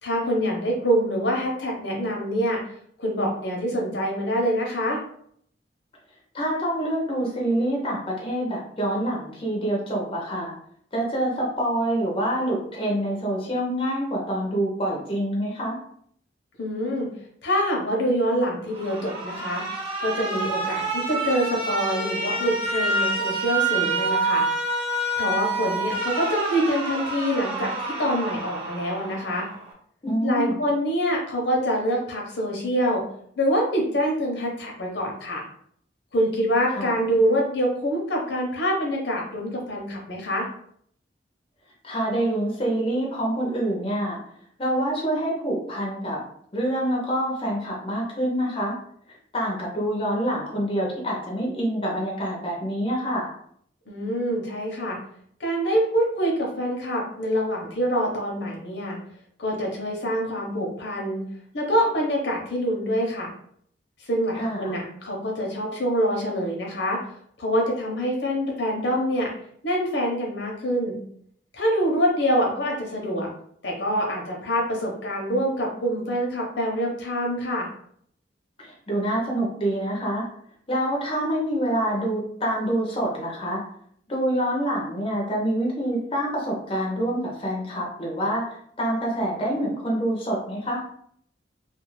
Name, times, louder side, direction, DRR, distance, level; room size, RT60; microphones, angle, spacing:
voice 1, 0.0-2.6 3.0-5.0 16.6-17.1 17.4-19.6 20.0-24.4 25.2-29.5 30.2-33.0 33.4-35.4 36.1-40.5 53.9-55.0 55.4-59.0 59.4-61.2 61.5-63.3 64.1-67.0 67.4-69.3 69.6-71.0 71.5-73.3 73.6-77.7, equal, 75° left, -1 dB, 0.8 m, -25 dB
voice 2, 6.3-10.5 10.9-15.8 30.0-30.6 36.7-37.0 41.8-44.2 44.6-46.2 46.5-48.8 49.1-53.3 64.4-64.7 78.6-80.3 80.7-83.6 84.1-88.4 88.8-90.8, right 1 dB, 30° left, -3 dB, 0.6 m, -26 dB
Alarm, 18.7-29.7, right 2 dB, 30° right, 0.6 m, -27 dB
2.4 x 2.4 x 3.0 m, 0.66 s
head